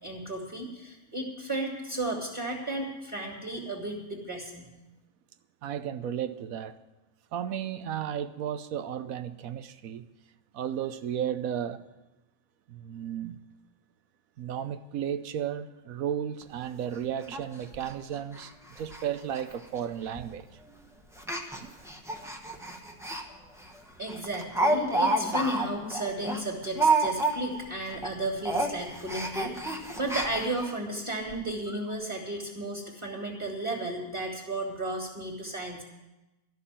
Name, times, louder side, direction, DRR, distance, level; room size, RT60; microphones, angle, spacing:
voice 1, 0.0-4.7 24.0-35.8, right 1 dB, 20° right, 2.4 m, -34 dB
voice 2, 5.6-6.8 7.3-10.1 10.5-11.8 12.7-13.4 14.4-20.5 21.6-21.7, right 9 dB, 70° right, 1.1 m, -34 dB
Speech, 16.4-16.5 16.9-17.0 17.3-17.4 17.7-17.9 18.3-18.5 18.8-19.0 19.3-19.4 20.2-20.4 21.2-23.2 23.6-23.7 24.1-27.6 27.9-28.1 28.4-30.7 31.3-31.4 31.7-31.8, right 2 dB, ahead, 0.9 m, -29 dB
13.0 x 6.5 x 9.9 m
omnidirectional pair, 1.6 m